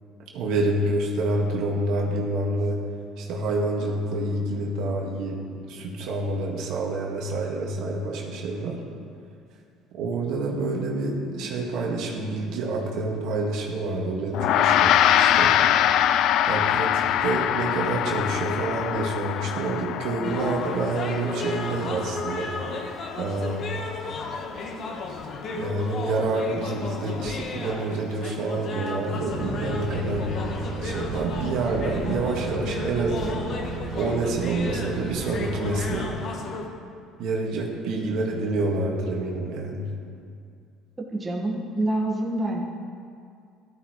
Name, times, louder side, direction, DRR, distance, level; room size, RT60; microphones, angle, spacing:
voice 1, 0.3-2.8 3.2-8.8 9.9-15.6 16.5-22.5 23.2-23.7 25.5-30.5 30.8-36.1 37.2-39.9, right 2 dB, 70° right, -1 dB, 1.9 m, -28 dB
Gong, 14.3-23.9, left 11 dB, 65° left, 0.4 m, -24 dB
sound 1, 20.2-36.7, left 3 dB, 50° left, 1.3 m, -34 dB
sound 2, 29.2-36.1, right 4 dB, 90° right, 2.2 m, -35 dB
voice 2, 41.1-42.6, right 1 dB, 20° right, -2 dB, 1.7 m, -26 dB
14.5 x 12.5 x 3.2 m, 2.3 s
supercardioid pair, 105°, 0 cm